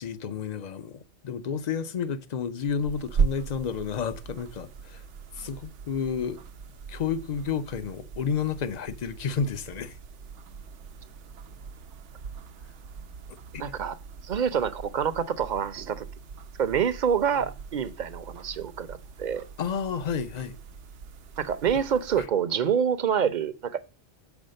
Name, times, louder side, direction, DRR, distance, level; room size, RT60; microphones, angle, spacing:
voice 1, 0.0-5.0 5.3-6.4 6.9-10.0 13.5-13.6 19.6-20.6 22.2-22.3, left 6 dB, 45° left, 0.6 m, -31 dB
sound 1, 2.6-22.3, right 6 dB, 80° right, 0.9 m, -38 dB
voice 2, 13.6-14.0 14.2-16.1 16.6-19.4 21.4-23.8, right 7 dB, 50° right, 0.7 m, -27 dB
7.1 x 4.8 x 6.3 m
omnidirectional pair, 1.2 m